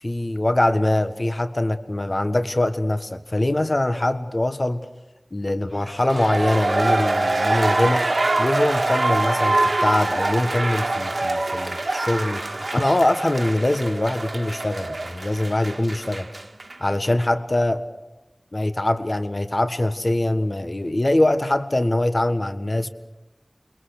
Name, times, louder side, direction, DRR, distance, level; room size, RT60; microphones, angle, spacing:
voice 1, 0.0-4.9 5.3-8.0 8.4-16.3 16.8-17.8 18.5-22.9, left 1 dB, 50° left, 9 dB, 1.5 m, -23 dB
sound 1, 5.9-16.8 17.0-17.1, right 2 dB, 75° right, 1.6 m, -24 dB
29.0 x 22.5 x 6.6 m, 1.0 s
wide cardioid pair, 50°, 0 cm